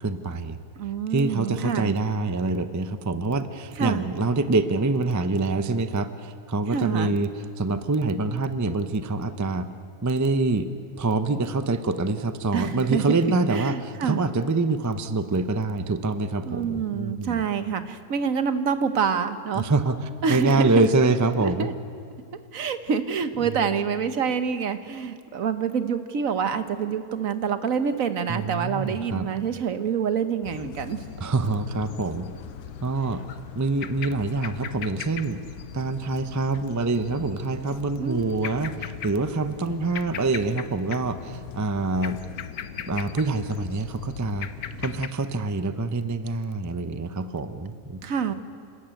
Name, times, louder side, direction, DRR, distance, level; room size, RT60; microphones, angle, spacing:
voice 1, 0.0-0.6 0.8-9.7 10.0-10.7 11.0-17.4 19.5-21.7 28.3-29.3 31.2-32.3 32.8-33.2 33.5-35.4 35.7-42.2 42.9-44.5 44.8-48.0, right 3 dB, 20° right, 10 dB, 0.5 m, -25 dB
voice 2, 0.8-1.9 3.8-4.1 6.7-7.2 12.5-13.0 13.5-14.2 16.4-19.7 20.2-20.8 21.4-21.7 22.5-31.0 38.0-38.5 48.0-48.3, right 6 dB, 65° right, 10 dB, 1.4 m, -27 dB
sound 1, 30.4-45.1, left 8 dB, 85° left, 1.3 m, -39 dB
28.5 x 13.0 x 9.1 m, 2.3 s
omnidirectional pair, 1.6 m